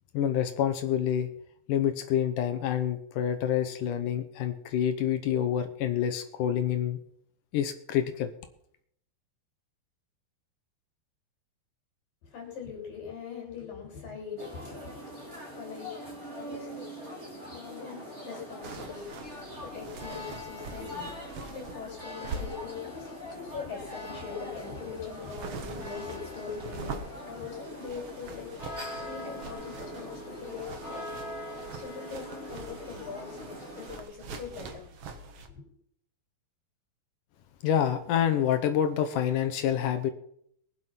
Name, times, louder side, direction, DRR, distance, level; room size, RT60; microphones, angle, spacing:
voice 1, 0.1-1.3 1.7-7.0 7.5-8.3 37.6-40.1, left 9 dB, 75° left, 8 dB, 1.9 m, -27 dB
voice 2, 12.2-31.1 31.8-34.9 35.4-35.6, left 6 dB, 55° left, 0 dB, 4.9 m, -42 dB
sound 1, 14.4-34.0, equal, 15° right, 3.9 m, -42 dB
sound 2, 18.6-35.5, right 4 dB, 65° right, 1.4 m, -44 dB
22.0 x 7.8 x 5.9 m, 0.69 s
omnidirectional pair, 4.9 m